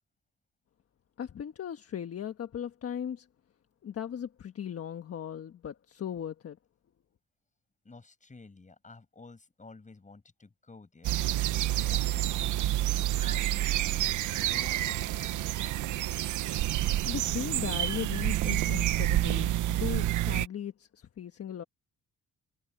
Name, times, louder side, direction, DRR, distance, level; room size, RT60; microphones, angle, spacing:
voice 1, 1.2-3.3 3.8-6.6 17.0-21.6, left 9 dB, 50° left, 1.4 m, -37 dB
voice 2, 7.8-15.5, left 3 dB, 25° left, 6.9 m, -52 dB
sound 1, 11.0-20.5, right 14 dB, 80° right, 1.0 m, -28 dB
cardioid pair, 90°, 30 cm